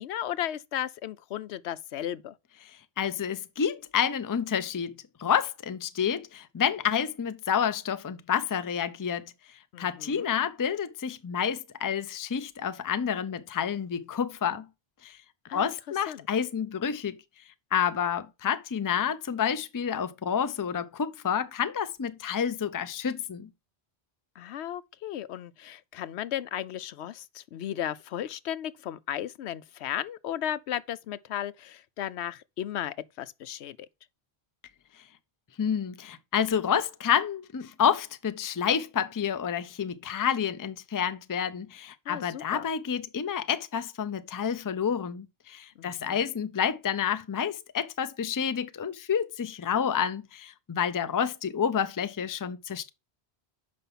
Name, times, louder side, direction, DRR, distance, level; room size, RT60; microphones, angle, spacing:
voice 1, 0.0-2.4 9.7-10.3 15.4-15.7 16.1-16.3 24.4-33.8 42.1-42.7 45.8-46.2, left 11 dB, 80° left, 0.9 m, -35 dB
voice 2, 3.0-9.3 9.8-14.7 15.0-15.2 15.5-17.2 17.7-23.5 35.6-52.9, left 8 dB, 30° left, 0.4 m, -29 dB
6.8 x 5.3 x 5.6 m
omnidirectional pair, 1.1 m